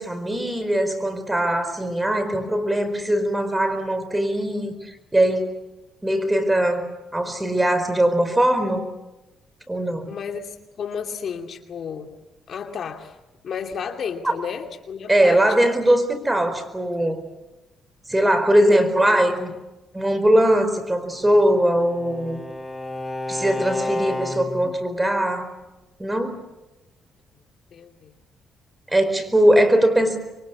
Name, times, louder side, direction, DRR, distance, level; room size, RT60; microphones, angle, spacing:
voice 1, 0.0-5.6 6.0-8.9 9.7-10.2 14.2-14.3 15.1-17.2 18.1-19.5 19.9-22.4 23.3-25.5 26.0-26.4 28.9-30.2, right 1 dB, 10° right, 9 dB, 4.6 m, -20 dB
voice 2, 10.1-12.1 12.5-13.2 13.4-15.4 18.6-18.8 27.7-28.1, left 7 dB, 60° left, 5 dB, 2.6 m, -32 dB
Bowed string instrument, 21.2-24.8, left 1 dB, 10° left, 4.4 m, -31 dB
26.5 x 23.0 x 8.4 m, 1.0 s
cardioid pair, 90°, 0 cm